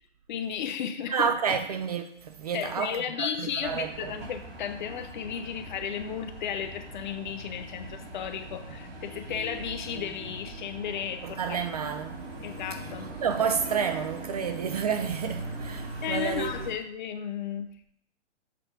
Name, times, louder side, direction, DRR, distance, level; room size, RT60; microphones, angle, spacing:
voice 1, 0.3-1.3 2.5-11.6 12.4-13.1 16.0-17.7, left 8 dB, 40° left, 0.8 m, -34 dB
voice 2, 1.1-4.1 11.2-12.3 13.2-16.5, right 7 dB, 35° right, 0.4 m, -30 dB
sound 1, 3.6-16.7, right 2 dB, 55° right, 2.8 m, -41 dB
7.5 x 3.9 x 5.1 m
figure-of-eight pair, 120°, 36 cm